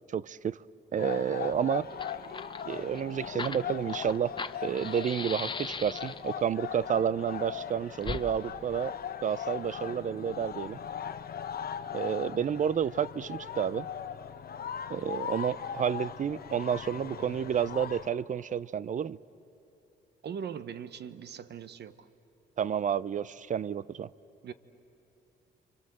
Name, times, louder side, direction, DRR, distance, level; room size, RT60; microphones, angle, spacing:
voice 1, 0.1-0.6 0.9-1.9 2.7-4.3 4.6-8.9 9.2-10.8 11.9-13.9 14.9-19.2 22.6-24.1, right 8 dB, 40° right, 0.5 m, -30 dB
sound 1, 1.0-18.1, left 8 dB, 50° left, 1.0 m, -39 dB
Fire, 1.5-1.6 1.8-6.4 8.0-8.2, left 4 dB, 25° left, 0.9 m, -39 dB
voice 2, 20.2-22.1 24.4-24.5, right 7 dB, 60° right, 1.1 m, -40 dB
29.5 x 25.0 x 7.8 m
cardioid pair, 90°, 20 cm